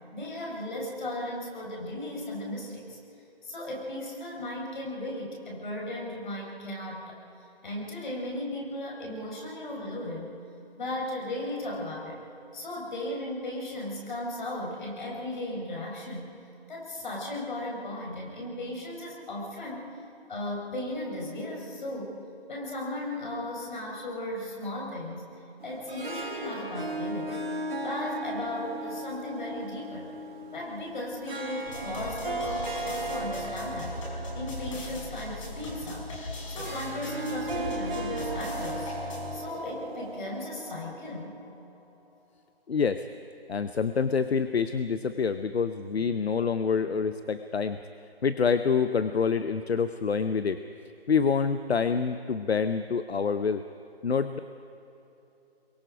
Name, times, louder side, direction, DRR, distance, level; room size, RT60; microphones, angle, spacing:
voice 1, 0.1-3.0 3.4-7.2 7.6-10.3 10.8-12.2 12.5-16.3 16.7-19.9 20.3-22.2 22.5-25.3 25.6-27.4 27.8-30.1 30.5-34.0 34.3-36.1 36.5-38.9 39.3-41.4, left 1 dB, 50° left, -1 dB, 5.4 m, -36 dB
Harp, 25.6-40.9, right 2 dB, 60° right, 4.4 m, -37 dB
sound 1, 31.7-41.8, left 2 dB, 30° left, 4.9 m, -39 dB
voice 2, 42.7-43.0 43.5-47.8 48.2-50.6 51.1-53.6 54.0-54.4, left 5 dB, 75° left, 10 dB, 0.8 m, -26 dB
24.5 x 22.5 x 5.1 m, 2.9 s
figure-of-eight pair, 160°, 32 cm